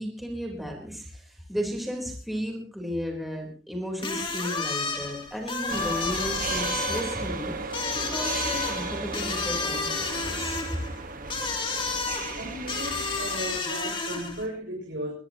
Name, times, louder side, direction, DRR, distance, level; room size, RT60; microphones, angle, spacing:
voice 1, 0.0-7.5 7.9-10.5, equal, ahead, 0 dB, 4.1 m, -34 dB
sound 1, 4.0-14.5, left 4 dB, 25° left, 3.0 m, -31 dB
sound 2, 5.7-13.6, right 3 dB, 45° right, 1.5 m, -35 dB
voice 2, 12.3-15.1, equal, 70° right, -3 dB, 6.3 m, -35 dB
22.0 x 21.0 x 3.0 m, 0.40 s
head